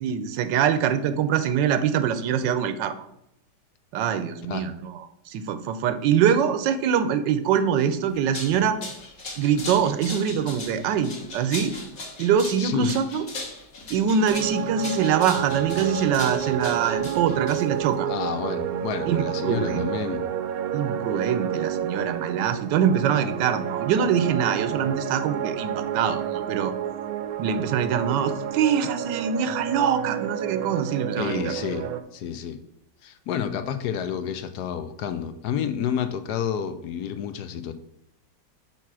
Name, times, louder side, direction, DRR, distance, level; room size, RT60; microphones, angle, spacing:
voice 1, 0.0-2.9 3.9-4.9 5.3-8.8 9.4-11.7 12.2-13.2 13.9-18.1 19.1-19.8 20.7-26.7 27.4-31.4, right 8 dB, 85° right, 10 dB, 1.3 m, -24 dB
sound 1, 8.1-17.9, left 3 dB, 50° left, 1.8 m, -38 dB
voice 2, 12.6-12.9 18.1-20.3 31.2-32.6 33.0-37.7, left 8 dB, 70° left, 9 dB, 1.1 m, -29 dB
sound 2, 14.3-32.0, right 10 dB, 65° right, 1.0 m, -30 dB
5.7 x 4.5 x 6.1 m, 0.80 s
omnidirectional pair, 1.9 m